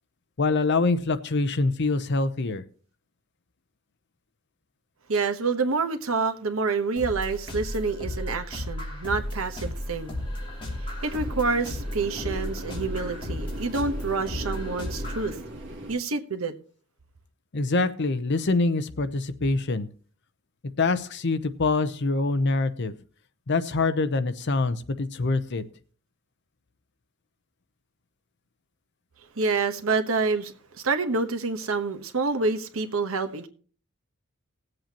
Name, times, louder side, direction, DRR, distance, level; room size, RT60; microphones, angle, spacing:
voice 1, 0.4-2.6 17.5-19.9 20.8-22.9 23.5-25.6, left 3 dB, 55° left, 0.7 m, -25 dB
voice 2, 5.1-10.2 10.8-15.4 15.9-16.5 29.4-33.5, right 4 dB, 80° right, 1.1 m, -27 dB
sound 1, 7.0-15.3, left 1 dB, 25° left, 3.0 m, -34 dB
sound 2, 9.2-15.9, right 1 dB, 60° right, 2.4 m, -41 dB
19.5 x 7.8 x 2.9 m
head